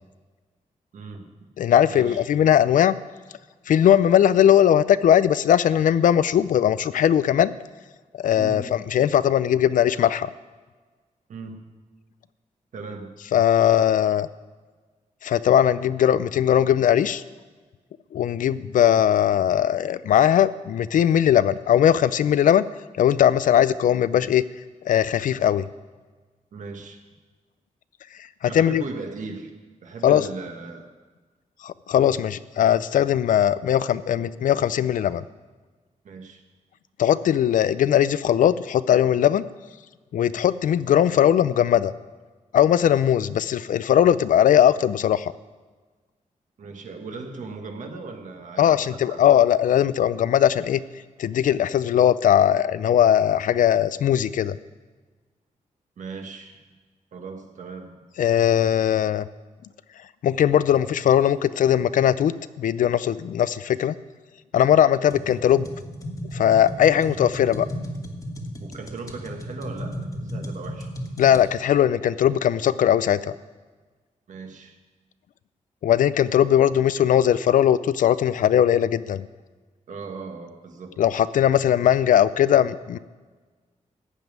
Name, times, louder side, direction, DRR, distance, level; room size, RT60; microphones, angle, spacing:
voice 1, 0.9-1.3 1.9-2.2 8.4-8.7 11.3-11.6 12.7-13.1 26.5-27.0 28.4-29.5 29.8-30.9 36.0-36.4 46.6-49.2 56.0-56.7 57.1-58.0 68.6-70.9 74.3-74.8 79.9-81.1, right 4 dB, 70° right, 4 dB, 1.5 m, -38 dB
voice 2, 1.6-2.9 3.7-7.5 8.2-10.3 13.3-14.3 15.2-17.2 18.1-22.6 23.0-24.4 24.9-25.6 28.4-28.8 30.0-30.3 31.6-35.2 37.0-39.4 40.1-41.9 42.5-45.3 48.6-50.8 51.2-54.6 58.2-59.2 60.2-63.9 64.5-65.7 66.3-67.7 71.2-73.4 75.8-79.2 81.0-83.0, left 10 dB, 80° left, 16 dB, 0.4 m, -19 dB
sound 1, 65.1-71.4, equal, 25° left, 1.4 m, -34 dB
14.5 x 5.4 x 9.2 m, 1.4 s
wide cardioid pair, 140°, 13 cm